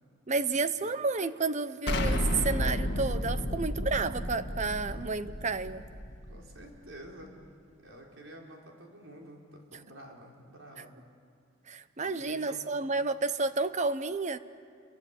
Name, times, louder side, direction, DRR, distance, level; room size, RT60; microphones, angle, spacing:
voice 1, 0.3-5.8 11.7-14.4, right 3 dB, 35° right, 13 dB, 0.9 m, -31 dB
Explosion, 1.9-6.7, left 1 dB, 55° left, 2.1 m, -32 dB
voice 2, 6.3-7.4 7.8-11.0 12.0-12.6, right 1 dB, 85° right, 0 dB, 4.4 m, -49 dB
29.0 x 23.5 x 8.4 m, 2.3 s
head